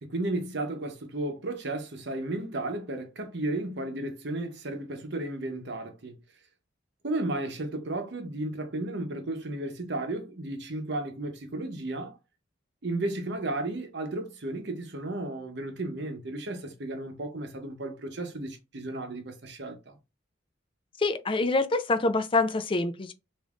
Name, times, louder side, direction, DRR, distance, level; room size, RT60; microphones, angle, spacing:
voice 1, 0.0-6.2 7.0-12.2 12.8-20.0, right 2 dB, 60° right, 0.8 m, -34 dB
voice 2, 21.0-23.1, left 3 dB, 25° left, 0.4 m, -26 dB
5.2 x 2.6 x 2.4 m
head